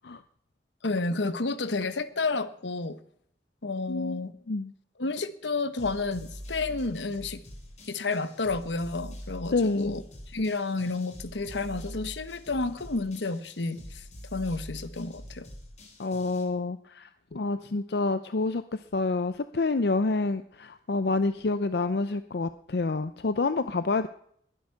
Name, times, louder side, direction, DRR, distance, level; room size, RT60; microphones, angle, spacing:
voice 1, 0.8-3.0 3.6-4.3 5.0-7.4 7.9-10.0 10.3-14.1 14.3-15.5, left 3 dB, 80° left, 13 dB, 1.1 m, -31 dB
voice 2, 3.9-4.7 9.5-10.0 16.0-24.1, left 3 dB, 60° left, 12 dB, 0.6 m, -28 dB
sound 1, 5.8-16.4, equal, 40° left, 3.7 m, -44 dB
21.5 x 11.0 x 5.8 m, 0.68 s
head